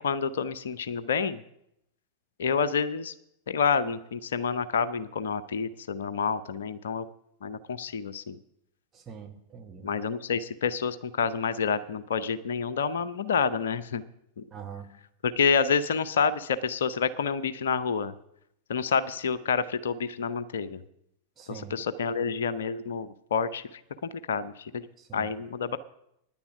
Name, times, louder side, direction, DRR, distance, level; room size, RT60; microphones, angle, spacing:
voice 1, 0.0-1.4 2.4-3.1 3.5-7.1 7.4-8.4 9.8-14.0 14.4-14.5 15.2-18.1 18.7-20.8 21.5-23.8 24.3-24.9 25.1-25.8, left 6 dB, 65° left, 14 dB, 0.6 m, -28 dB
voice 2, 8.9-9.9 14.5-14.9 21.4-21.7 25.0-25.3, right 7 dB, 20° right, 3 dB, 1.7 m, -43 dB
10.0 x 7.0 x 9.2 m, 0.78 s
figure-of-eight pair, 90°, 0 cm